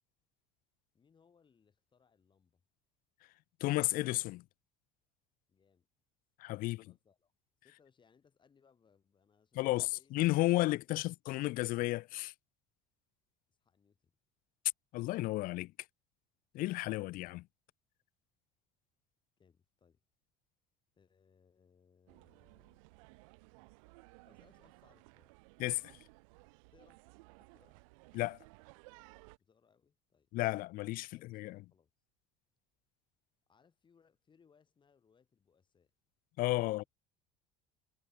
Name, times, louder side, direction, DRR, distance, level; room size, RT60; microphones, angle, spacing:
voice 1, 0.9-2.6 5.5-5.9 6.7-7.3 7.6-10.1 13.5-14.1 19.4-20.0 20.9-22.8 24.2-25.4 26.7-27.0 27.4-27.8 29.4-30.3 31.1-31.9 33.5-35.9 36.7-36.9, left 6 dB, 30° left, 6.2 m, -70 dB
voice 2, 3.6-4.4 6.4-6.8 9.6-12.3 14.9-15.7 16.5-17.4 25.6-25.8 28.1-28.4 30.3-31.6 36.4-36.8, left 19 dB, 60° left, 0.5 m, -33 dB
sound 1, 22.1-29.4, right 28 dB, 90° right, 0.8 m, -59 dB
supercardioid pair, 115°, 17 cm